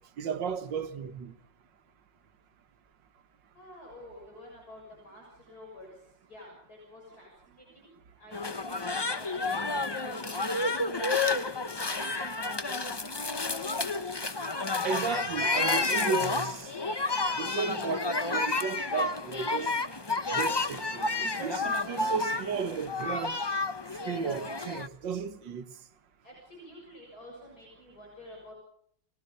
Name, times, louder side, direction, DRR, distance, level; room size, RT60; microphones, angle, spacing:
voice 1, 0.2-1.3 14.8-16.7 17.4-19.8 20.3-23.4 24.1-25.6, right 6 dB, 90° right, 1.9 m, -34 dB
voice 2, 3.5-6.0 6.3-13.9 26.2-28.5, left 1 dB, 55° left, 7.3 m, -50 dB
sound 1, 8.3-24.9, left 3 dB, 25° left, 0.5 m, -30 dB
29.5 x 21.5 x 5.4 m
omnidirectional pair, 1.9 m